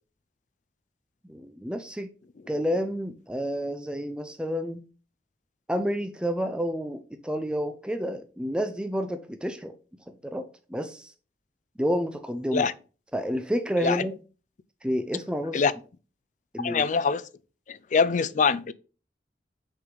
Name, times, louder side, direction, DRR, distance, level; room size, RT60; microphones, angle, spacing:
voice 1, 1.3-2.1 2.5-4.8 5.7-9.7 10.2-11.1 11.8-12.7 13.1-14.1 14.8-15.6 16.5-16.9, equal, 5° right, 0.5 m, -29 dB
voice 2, 16.6-17.2 17.7-18.7, left 5 dB, 45° left, 0.4 m, -24 dB
6.2 x 4.8 x 3.8 m
head